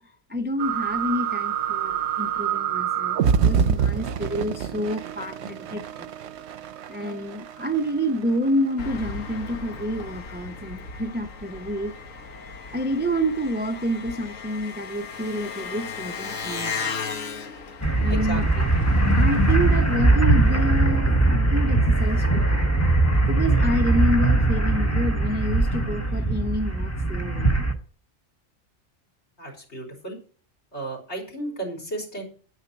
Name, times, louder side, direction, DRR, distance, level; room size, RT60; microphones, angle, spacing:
voice 1, 0.3-5.4 6.0-6.1 6.9-11.9 12.7-16.7 18.0-18.5 19.1-22.7 23.3-27.6, equal, 15° right, 0.4 m, -28 dB
sound 1, 0.6-9.0, right 7 dB, 65° right, 0.9 m, -27 dB
voice 2, 5.3-5.8 18.1-18.7 29.4-30.2 30.7-32.2, right 2 dB, 60° left, 4.1 m, -34 dB
Engine, 8.8-21.0, left 5 dB, 80° left, 1.6 m, -36 dB
sound 2, 17.8-27.7, right 2 dB, 15° left, 1.1 m, -20 dB
9.7 x 9.0 x 4.7 m
omnidirectional pair, 1.3 m